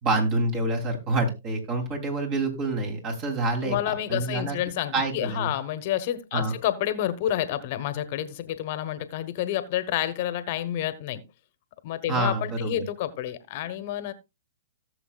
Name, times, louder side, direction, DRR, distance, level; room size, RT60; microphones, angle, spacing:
voice 1, 0.0-4.6 4.9-5.5 6.3-6.5 12.1-12.8, right 2 dB, 35° right, 4 dB, 3.2 m, -27 dB
voice 2, 3.6-11.2 11.8-14.1, left 12 dB, 50° left, 12 dB, 1.1 m, -29 dB
17.5 x 6.9 x 2.4 m, 0.25 s
hypercardioid pair, 125°, 0 cm